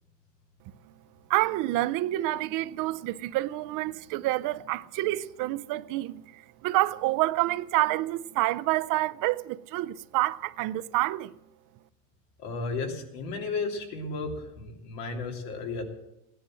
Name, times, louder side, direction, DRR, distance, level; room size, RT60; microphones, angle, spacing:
voice 1, 1.3-11.3, right 17 dB, 60° right, 0.6 m, -28 dB
voice 2, 12.4-15.8, left 3 dB, 85° left, 3.0 m, -33 dB
16.5 x 10.0 x 7.7 m
cardioid pair, 135°, 36 cm